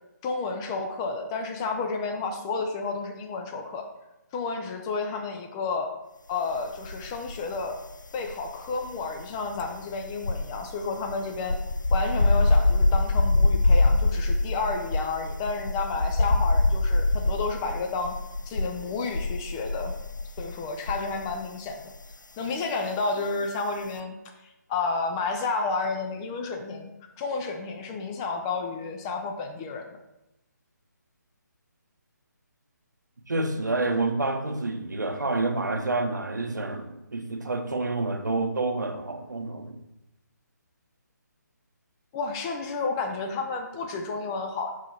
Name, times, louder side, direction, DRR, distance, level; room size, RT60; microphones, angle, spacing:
voice 1, 0.2-3.8 4.3-5.9 6.3-7.8 8.1-11.6 11.9-18.2 18.5-19.9 20.4-21.8 22.4-24.1 24.4-30.0 42.1-44.7, left 4 dB, 15° left, 4 dB, 0.3 m, -31 dB
sound 1, 6.8-7.7 7.9-21.4 21.7-22.0, left 2 dB, 85° left, 0.4 m, -24 dB
voice 2, 33.2-39.8, right 2 dB, 70° right, 7 dB, 0.9 m, -28 dB
5.3 x 4.8 x 4.1 m, 0.93 s
figure-of-eight pair, 145°, 10 cm